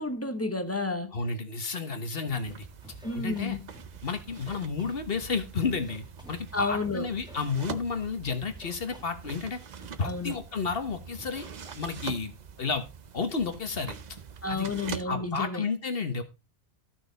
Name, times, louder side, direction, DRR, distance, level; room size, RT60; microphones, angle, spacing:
voice 1, 0.0-1.1 3.0-3.6 6.5-7.1 10.0-10.4 14.4-15.7, left 3 dB, 15° left, 1.1 m, -31 dB
voice 2, 1.1-2.7 3.2-3.6 4.0-9.6 10.0-11.4 11.8-12.8 13.1-14.0 14.5-14.7 15.0-16.2, left 5 dB, 55° left, 1.4 m, -31 dB
Scratching (performance technique), 2.2-2.5 2.8-4.0 4.3-5.4 5.7-6.8 7.1-8.2 8.5-9.5 9.8-10.4 10.6-10.9 11.2-12.0, equal, 5° right, 1.8 m, -50 dB
sound 1, 2.4-15.0, right 6 dB, 45° right, 0.7 m, -44 dB
13.5 x 6.1 x 4.0 m
omnidirectional pair, 1.2 m